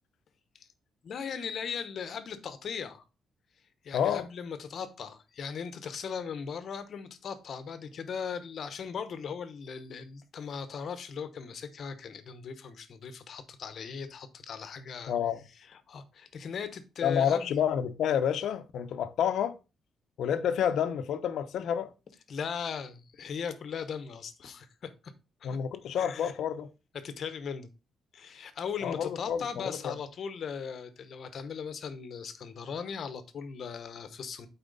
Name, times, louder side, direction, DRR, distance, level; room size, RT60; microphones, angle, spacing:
voice 1, 1.0-3.0 3.8-15.1 15.7-17.5 22.3-25.1 25.4-25.6 26.0-26.3 26.9-27.7 28.1-34.5, left 6 dB, 55° left, 0.9 m, -38 dB
voice 2, 3.9-4.2 15.1-15.4 17.0-19.5 20.2-21.9 25.4-26.7 28.8-29.9, left 8 dB, 75° left, 0.7 m, -29 dB
8.9 x 4.3 x 4.0 m
cardioid pair, 135°, 0 cm